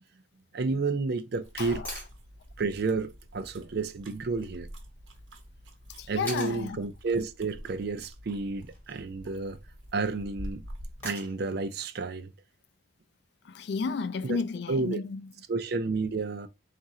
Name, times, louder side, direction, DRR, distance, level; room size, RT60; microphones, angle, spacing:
voice 1, 0.5-2.0 2.6-4.7 6.1-9.6 9.9-10.6 11.0-12.3 14.2-14.4 14.7-15.0 15.5-16.5, right 4 dB, 55° right, 0.4 m, -31 dB
sound 1, 1.4-11.1, equal, 85° right, 1.0 m, -47 dB
sound 2, 1.8-2.1 4.4-4.5 6.3-6.6 8.6-9.0 11.0-11.5 13.6-13.7, left 1 dB, 10° left, 1.9 m, -40 dB
voice 2, 6.0-6.8 13.4-15.3, left 5 dB, 60° left, 0.3 m, -32 dB
3.6 x 2.5 x 4.2 m
head